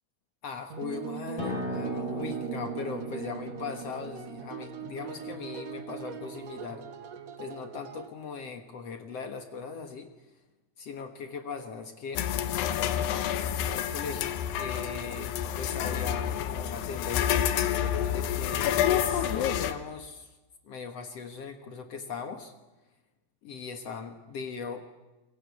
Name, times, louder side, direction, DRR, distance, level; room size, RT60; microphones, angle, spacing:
voice 1, 0.4-6.9 7.4-10.2 10.8-13.0 13.7-17.5 18.1-20.4 20.6-22.5 23.4-24.8, left 5 dB, 60° left, 5 dB, 1.8 m, -39 dB
sound 1, 0.7-8.1, right 8 dB, 60° right, 1.9 m, -41 dB
Acoustic guitar, 1.4-6.6, right 1 dB, 35° left, 6.7 m, -38 dB
sound 2, 12.2-19.7, left 10 dB, 85° left, 3.2 m, -28 dB
27.0 x 22.5 x 8.4 m, 1.1 s
omnidirectional pair, 4.7 m